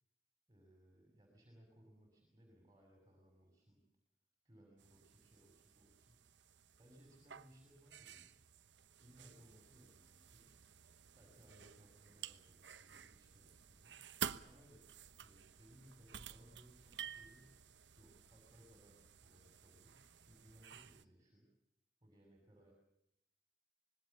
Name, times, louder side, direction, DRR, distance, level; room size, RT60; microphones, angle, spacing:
voice 1, 0.5-3.8 4.4-6.2 6.8-8.4 9.0-10.5 11.1-14.0 14.4-17.6 18.0-21.5 22.0-22.7, equal, 20° right, 0 dB, 6.2 m, -65 dB
sound 1, 4.8-21.0, right 8 dB, 65° right, 1.0 m, -52 dB
26.0 x 21.0 x 7.0 m, 0.82 s
head